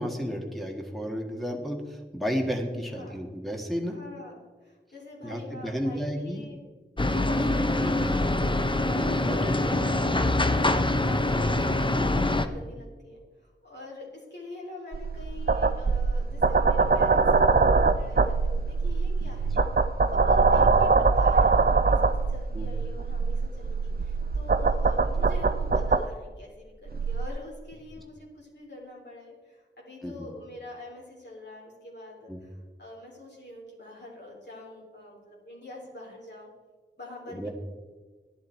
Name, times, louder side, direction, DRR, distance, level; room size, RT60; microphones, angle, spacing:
voice 1, 0.0-4.0 5.2-6.4 7.8-8.1 8.9-10.2 19.2-19.6 20.5-20.7 22.5-22.7 30.0-30.3 32.3-32.4 37.3-37.5, equal, ahead, 1 dB, 1.6 m, -33 dB
voice 2, 2.9-3.2 3.8-6.6 7.1-9.0 9.4-9.7 11.3-19.6 20.1-36.5 37.0-37.5, left 1 dB, 65° left, -4 dB, 3.5 m, -45 dB
sound 1, 7.0-12.5, left 2 dB, 25° left, 0.7 m, -24 dB
sound 2, 14.9-26.1 26.9-27.3, right 4 dB, 55° right, 0.5 m, -23 dB
12.5 x 10.5 x 4.5 m, 1.4 s
wide cardioid pair, 45°, 19 cm